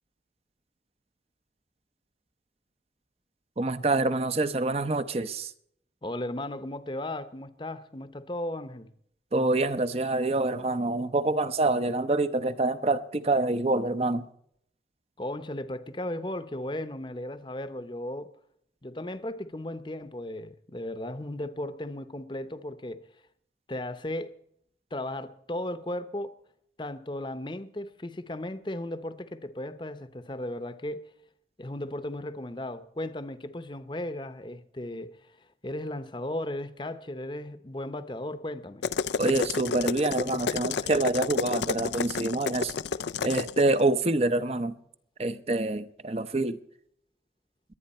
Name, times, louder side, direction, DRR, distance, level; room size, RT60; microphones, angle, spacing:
voice 1, 3.6-5.5 9.3-14.3 39.2-42.7 43.2-44.8 45.2-46.6, right 2 dB, 35° right, 0.7 m, -26 dB
voice 2, 6.0-8.9 15.2-18.3 18.8-23.1 23.7-24.3 24.9-26.3 26.8-31.1 31.6-35.4 35.6-38.8, left 1 dB, 25° left, 0.8 m, -36 dB
sound 1, 38.8-43.6, left 5 dB, 75° left, 0.4 m, -30 dB
22.0 x 9.3 x 4.3 m
head